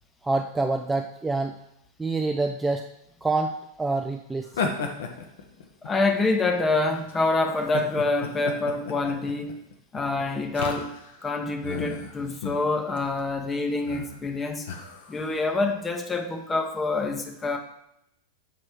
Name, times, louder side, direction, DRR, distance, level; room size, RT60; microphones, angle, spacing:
voice 1, 0.2-1.6 2.0-2.9 3.2-4.7, right 3 dB, 10° right, 4 dB, 0.3 m, -27 dB
sound 1, 4.5-6.3 6.9-7.1 7.6-11.2 11.6-12.7 13.0-13.2 13.8-14.2 14.7-15.4, left 5 dB, 55° left, 0.7 m, -33 dB
voice 2, 5.8-9.6 9.9-10.9 11.2-14.7 15.1-17.6, left 3 dB, 15° left, 4 dB, 0.7 m, -26 dB
6.9 x 3.2 x 4.4 m, 0.80 s
figure-of-eight pair, 90°, 0 cm